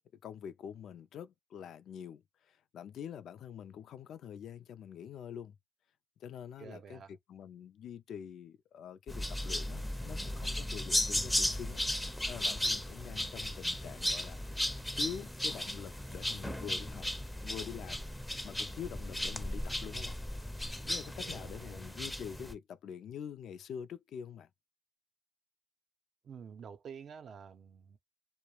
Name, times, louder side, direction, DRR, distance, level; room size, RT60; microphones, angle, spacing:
voice 1, 0.2-2.2 2.5-5.6 6.2-14.4 14.9-17.1 17.4-18.0 18.4-20.2 20.8-24.5, left 8 dB, 70° left, 0.3 m, -45 dB
voice 2, 6.6-7.1 21.2-21.8 26.2-28.0, right 7 dB, 60° right, 0.5 m, -49 dB
sound 1, 9.1-22.5, left 1 dB, 5° left, 0.5 m, -36 dB
2.3 x 2.0 x 3.0 m
cardioid pair, 90°, 0 cm